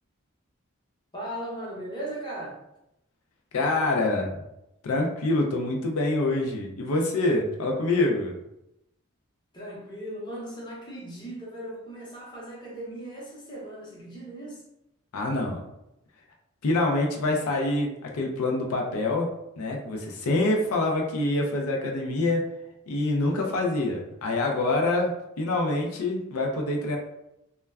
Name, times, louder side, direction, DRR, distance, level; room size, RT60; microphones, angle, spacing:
voice 1, 1.1-2.6 9.5-14.6, right 1 dB, 20° left, -4 dB, 0.7 m, -38 dB
voice 2, 3.5-4.4 4.8-8.3 15.1-15.6 16.6-19.3 19.6-22.4 22.9-25.1 25.4-27.0, left 2 dB, 80° left, 1 dB, 0.5 m, -26 dB
2.2 x 2.1 x 3.3 m, 0.85 s
head